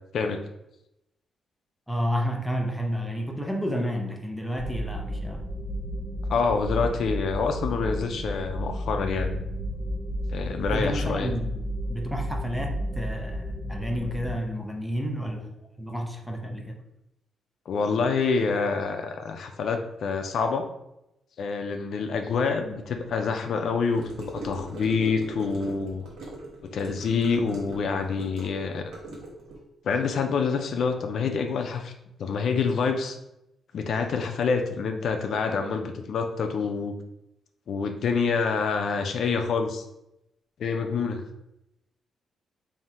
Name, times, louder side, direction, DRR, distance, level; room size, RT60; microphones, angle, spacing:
voice 1, 1.9-5.5 10.7-11.6 11.9-15.5 15.8-16.8, equal, ahead, 1 dB, 0.6 m, -31 dB
sound 1, 4.6-14.3, equal, 30° right, 1.5 m, -32 dB
voice 2, 6.3-9.4 10.3-11.3 17.7-20.7 21.4-26.0 26.7-28.9 29.8-31.9 32.2-33.2 33.7-37.0 37.7-39.8 40.6-41.2, left 5 dB, 65° left, 5 dB, 0.4 m, -27 dB
Gurgling / Car passing by / Sink (filling or washing), 23.9-29.6, right 1 dB, 85° right, 1.2 m, -40 dB
3.6 x 2.7 x 4.3 m, 0.85 s
cardioid pair, 100°, 0 cm